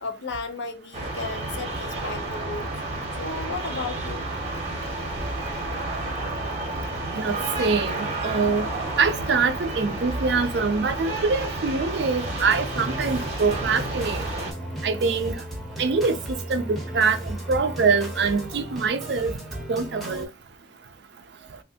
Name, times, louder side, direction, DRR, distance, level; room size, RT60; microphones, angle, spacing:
voice 1, 0.0-2.7 3.2-4.3, left 4 dB, 70° left, 0.6 m, -34 dB
sound 1, 0.9-14.5, right 2 dB, 35° right, 0.8 m, -31 dB
voice 2, 7.1-8.7 9.0-14.2 14.8-15.4 15.8-16.2 16.5-19.3 19.7-20.3, right 4 dB, 60° right, 0.4 m, -24 dB
sound 2, 12.3-20.3, right 1 dB, ahead, 0.7 m, -35 dB
3.2 x 2.5 x 2.7 m
head